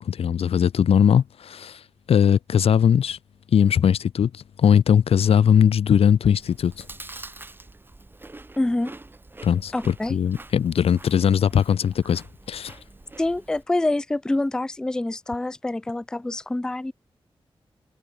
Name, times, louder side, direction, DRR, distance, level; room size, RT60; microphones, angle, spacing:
voice 1, 0.0-1.8 2.1-3.2 3.5-6.9 9.4-12.8, left 8 dB, 80° left, 0.5 m, -20 dB
Chewing mastication, 6.3-13.6, right 2 dB, 20° right, 7.8 m, -45 dB
voice 2, 8.6-8.9 9.7-10.2 13.2-16.9, left 2 dB, 5° left, 0.3 m, -26 dB
wide cardioid pair, 165°, 10 cm